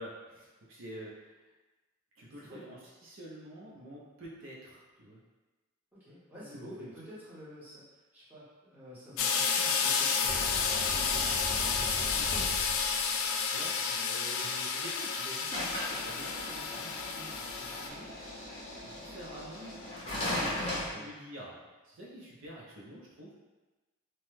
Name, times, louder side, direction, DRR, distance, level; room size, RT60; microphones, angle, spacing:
voice 1, 0.0-1.3 2.2-5.2 6.4-6.9 13.5-18.1 18.4-19.8 20.3-23.4, equal, 65° right, -5 dB, 0.6 m, -48 dB
voice 2, 6.0-7.8 8.1-12.8 13.8-13.9 14.4-14.5 20.4-21.1, equal, 10° right, -11 dB, 0.8 m, -49 dB
sound 1, 9.2-17.9, left 5 dB, 75° left, 0.3 m, -31 dB
sound 2, 10.2-13.0 15.5-20.9, left 1 dB, 25° left, 0.7 m, -38 dB
2.9 x 2.1 x 3.1 m, 1.2 s
head